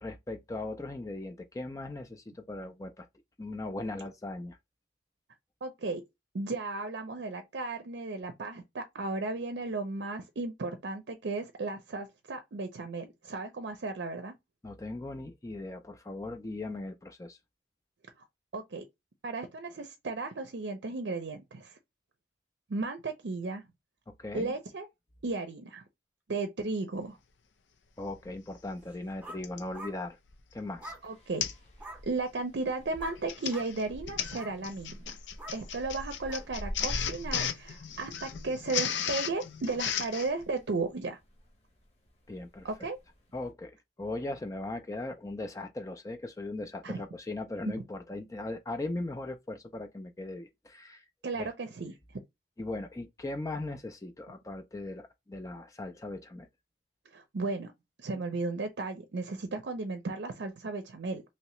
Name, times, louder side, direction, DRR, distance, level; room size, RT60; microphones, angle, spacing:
voice 1, 0.0-3.1 3.4-4.6 14.6-17.4 24.2-24.5 28.0-30.2 30.5-31.0 42.3-42.9 43.3-51.0 51.4-51.5 52.6-56.5, left 2 dB, 20° left, 0.4 m, -38 dB
voice 2, 5.6-6.0 6.3-14.3 18.5-18.8 19.2-21.8 22.7-23.6 24.3-24.9 25.2-25.8 26.3-27.2 31.0-31.4 32.0-35.1 35.5-41.2 42.6-43.0 46.8-47.0 51.2-52.0 57.1-57.7 58.0-61.2, right 3 dB, 70° right, 0.5 m, -35 dB
Printer, 28.2-28.3 29.4-29.7 30.3-30.5 30.8-30.9 31.4-31.7 32.0-32.3 33.1-40.3, left 8 dB, 80° left, 0.5 m, -35 dB
sound 1, 28.9-29.4 29.7-30.0 30.8-31.0 31.8-32.0 33.0-33.2 33.5-33.7 34.2-34.6 35.4-35.6 36.3-36.5 37.3-37.5, right 1 dB, 10° right, 0.7 m, -45 dB
sound 2, 31.0-43.5, equal, 35° left, 1.0 m, -46 dB
3.0 x 2.8 x 3.0 m
head